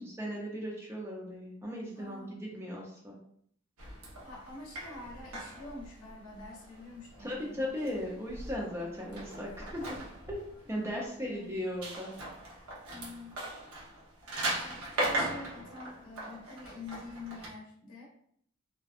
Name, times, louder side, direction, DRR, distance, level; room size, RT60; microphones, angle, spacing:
voice 1, 0.0-3.2 7.2-9.8 10.3-10.4 10.7-12.1, equal, 10° right, -2 dB, 0.5 m, -37 dB
voice 2, 2.0-2.4 4.2-7.7 10.8-11.6 12.9-13.5 14.4-18.1, left 3 dB, 70° left, -2 dB, 0.7 m, -47 dB
sound 1, 3.8-17.5, right 1 dB, 85° right, 0.7 m, -40 dB
2.6 x 2.2 x 2.4 m, 0.65 s
head